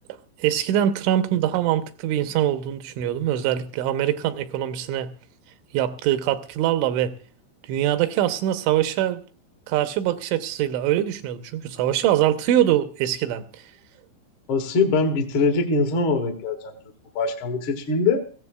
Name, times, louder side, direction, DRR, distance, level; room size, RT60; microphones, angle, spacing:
voice 1, 0.4-5.1 5.7-7.1 7.7-9.2 9.7-13.6, right 12 dB, 90° right, 9 dB, 3.3 m, -23 dB
voice 2, 14.5-16.8 17.1-18.2, left 3 dB, 85° left, 2 dB, 1.1 m, -22 dB
22.5 x 15.5 x 2.3 m, 0.39 s
omnidirectional pair, 5.3 m